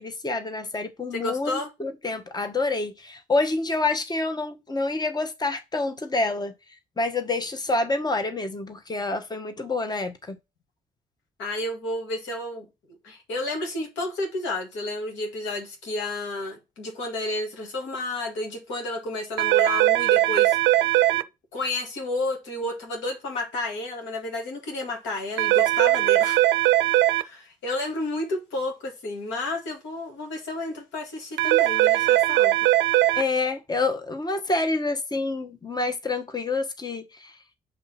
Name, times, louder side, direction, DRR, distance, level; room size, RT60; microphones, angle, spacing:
voice 1, 0.0-6.5 7.0-10.3 33.1-37.3, left 3 dB, 20° left, 1.1 m, -27 dB
voice 2, 1.1-1.7 11.4-12.7 13.0-20.6 21.1-26.5 27.2-32.6, left 2 dB, 80° left, 1.9 m, -31 dB
sound 1, 19.4-21.2 25.4-27.2 31.4-33.2, right 16 dB, 85° right, 0.4 m, -20 dB
8.0 x 2.7 x 5.8 m
supercardioid pair, 60°, 19 cm